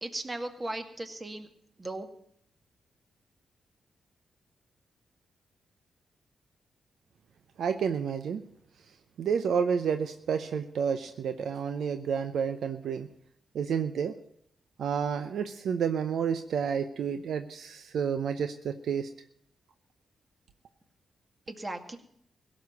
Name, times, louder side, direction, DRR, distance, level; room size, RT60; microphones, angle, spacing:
voice 1, 0.0-1.5 1.8-2.1 21.5-22.0, right 2 dB, 30° right, 6 dB, 2.1 m, -37 dB
voice 2, 7.6-8.4 9.2-13.1 13.5-14.1 14.8-19.1, right 7 dB, 75° right, 9 dB, 0.7 m, -30 dB
17.0 x 6.3 x 9.6 m, 0.69 s
supercardioid pair, 45°, 0 cm